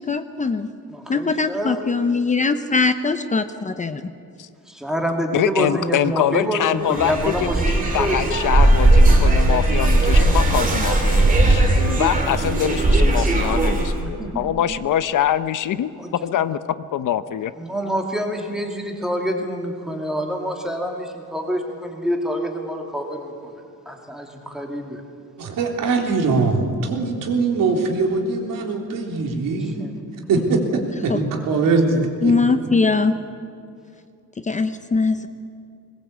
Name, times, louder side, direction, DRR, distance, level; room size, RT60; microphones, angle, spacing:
voice 1, 0.0-0.7 1.1-4.1 31.1-31.2 32.2-33.2 34.4-35.3, left 4 dB, 20° left, 9 dB, 0.6 m, -21 dB
voice 2, 0.9-1.8 4.7-8.3 14.0-14.4 16.0-16.3 17.6-23.5 23.9-25.0 29.8-30.0 30.4-30.5 31.4-31.5, equal, ahead, 1 dB, 2.3 m, -27 dB
voice 3, 5.3-15.9 16.2-16.6 16.9-17.5, left 10 dB, 65° left, 13 dB, 0.9 m, -24 dB
sound 1, 6.8-14.0, right 2 dB, 25° right, 3.2 m, -17 dB
voice 4, 25.4-29.9 30.3-30.6 31.0-32.3, right 4 dB, 80° right, 1 dB, 3.6 m, -21 dB
21.0 x 20.5 x 8.3 m, 2.4 s
cardioid pair, 175°, 33 cm